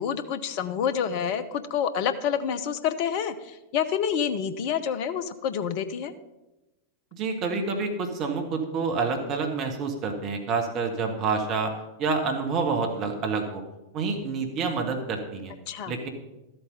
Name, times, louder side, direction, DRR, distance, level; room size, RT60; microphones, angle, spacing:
voice 1, 0.0-6.1 15.7-15.9, left 8 dB, 45° left, 13 dB, 0.8 m, -28 dB
voice 2, 7.1-11.7 12.0-13.6 13.9-15.5 15.8-16.1, right 4 dB, 35° right, 4 dB, 1.7 m, -28 dB
13.0 x 8.0 x 5.4 m, 1.0 s
figure-of-eight pair, 90°, 0 cm